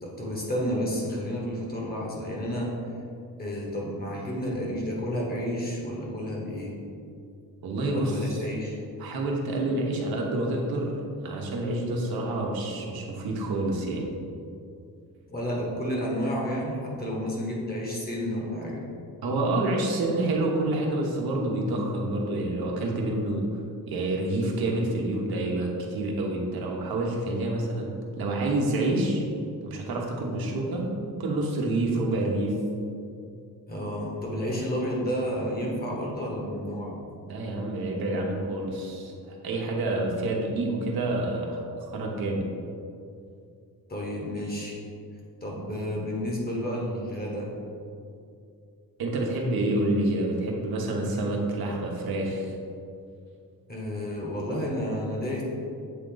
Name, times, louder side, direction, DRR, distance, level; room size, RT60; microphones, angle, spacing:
voice 1, 0.0-2.8 3.4-6.8 7.9-8.8 15.3-18.8 33.7-37.0 43.9-44.8 45.4-47.5 53.7-55.4, equal, 25° left, -3 dB, 1.2 m, -31 dB
voice 2, 7.6-8.3 9.0-10.9 11.2-14.1 19.2-23.4 23.9-27.9 28.2-29.2 29.6-32.5 37.3-42.5 49.0-52.5, right 2 dB, 75° right, -1 dB, 1.1 m, -28 dB
7.9 x 3.7 x 3.9 m, 2.5 s
wide cardioid pair, 160°, 37 cm